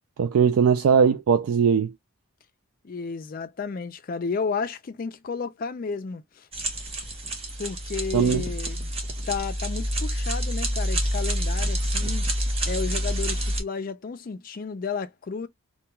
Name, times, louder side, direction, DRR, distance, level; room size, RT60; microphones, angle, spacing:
voice 1, 0.2-1.9 8.1-8.4, right 6 dB, 75° right, 0.3 m, -20 dB
voice 2, 2.8-6.5 7.6-8.9 9.3-12.3 12.7-15.5, left 5 dB, 40° left, 0.3 m, -32 dB
sound 1, 6.5-13.6, equal, 25° right, 0.7 m, -27 dB
2.2 x 2.2 x 2.9 m
head